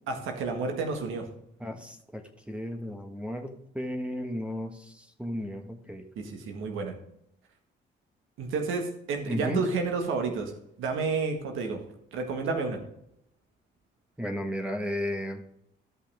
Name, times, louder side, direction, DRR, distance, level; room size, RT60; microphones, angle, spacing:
voice 1, 0.1-1.2 6.1-6.9 8.4-10.5 10.8-11.8 12.1-12.8, right 4 dB, 85° right, 4 dB, 1.7 m, -30 dB
voice 2, 1.6-6.1 9.3-9.6 14.2-15.4, equal, 5° right, 4 dB, 1.4 m, -34 dB
14.0 x 5.8 x 3.6 m, 0.75 s
cardioid pair, 90°, 20 cm